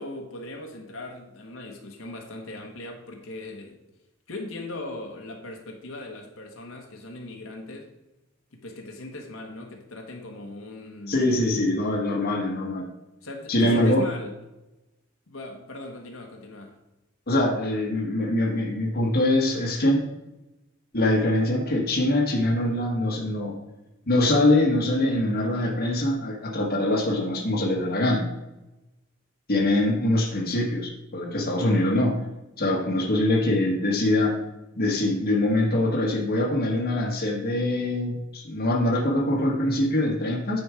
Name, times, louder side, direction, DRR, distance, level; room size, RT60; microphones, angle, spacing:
voice 1, 0.0-3.8 4.3-7.9 8.5-11.3 13.2-14.3 15.3-16.8, left 2 dB, 70° left, 1 dB, 1.4 m, -39 dB
voice 2, 11.1-12.9 13.5-14.0 17.3-20.0 20.9-23.6 24.1-28.3 29.5-32.2 32.6-34.4 34.7-40.6, left 1 dB, 50° left, 0 dB, 1.4 m, -23 dB
9.8 x 4.4 x 4.9 m, 0.98 s
head